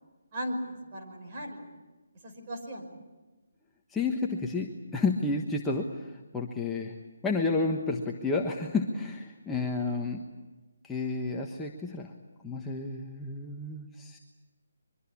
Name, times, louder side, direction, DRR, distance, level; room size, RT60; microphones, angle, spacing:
voice 1, 0.3-1.7 2.2-2.9, equal, 30° right, 2 dB, 5.6 m, -37 dB
voice 2, 3.9-7.0 7.2-10.2 10.8-12.1 12.4-14.2, left 3 dB, 5° left, -1 dB, 1.3 m, -31 dB
24.5 x 24.0 x 8.5 m, 1.2 s
hypercardioid pair, 160°, 0 cm